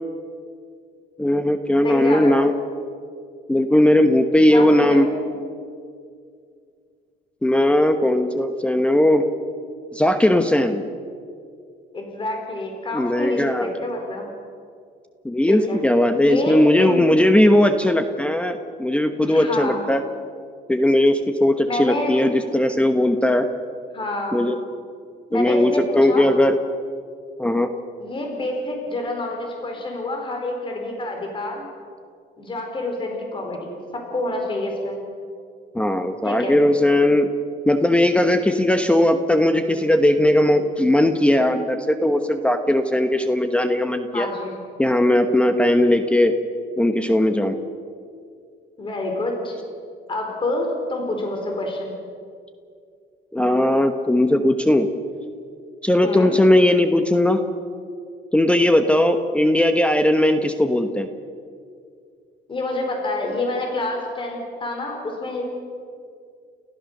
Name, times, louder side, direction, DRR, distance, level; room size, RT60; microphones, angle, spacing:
voice 1, 1.2-2.5 3.5-5.1 7.4-9.2 9.9-10.8 12.9-13.7 15.2-20.0 20.7-23.5 24.3-24.6 25.3-26.6 27.4-27.7 35.7-37.3 37.7-44.3 44.8-46.3 46.8-47.5 53.3-54.9 55.8-57.4 58.3-61.1, left 1 dB, 5° left, 8 dB, 1.1 m, -18 dB
voice 2, 1.8-2.4 4.4-5.1 11.9-14.3 15.5-15.8 16.2-17.0 19.2-19.8 21.6-22.3 23.9-24.5 25.3-26.3 28.0-31.7 32.4-35.0 36.2-36.6 44.1-44.6 48.8-49.6 50.1-51.9 56.0-56.3 62.5-65.4, left 2 dB, 30° left, 2 dB, 4.4 m, -27 dB
29.5 x 14.5 x 6.7 m, 2.3 s
cardioid pair, 110°, 17 cm